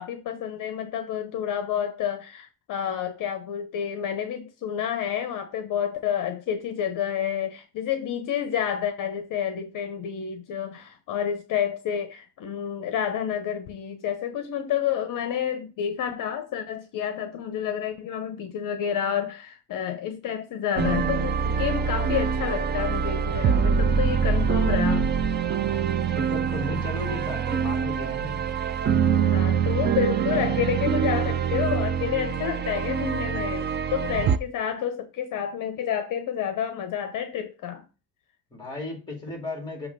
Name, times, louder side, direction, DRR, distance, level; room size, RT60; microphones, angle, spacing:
voice 1, 0.0-25.1 29.1-37.8, left 9 dB, 55° left, 0.8 m, -29 dB
sound 1, 20.8-34.4, right 7 dB, 30° right, 0.4 m, -24 dB
voice 2, 26.1-28.4 38.5-39.9, left 2 dB, 10° left, 2.4 m, -35 dB
7.2 x 2.9 x 5.3 m
cardioid pair, 155°, 38 cm